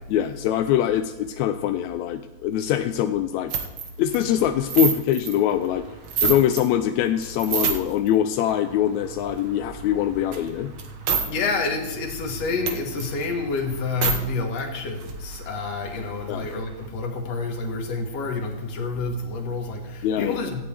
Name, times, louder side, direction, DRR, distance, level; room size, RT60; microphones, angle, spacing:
voice 1, 0.1-3.5 4.0-5.8 6.2-10.7 16.3-16.5 20.0-20.5, left 10 dB, 80° left, 8 dB, 1.7 m, -23 dB
sound 1, 3.5-6.7 7.0-8.1 8.5-11.3 11.5-11.6 11.9-14.2 14.6-14.7 14.9-16.9, right 6 dB, 60° right, 1.2 m, -30 dB
voice 2, 11.3-20.7, left 3 dB, 60° left, 3 dB, 2.6 m, -28 dB
16.5 x 13.0 x 3.4 m, 1.1 s
omnidirectional pair, 3.6 m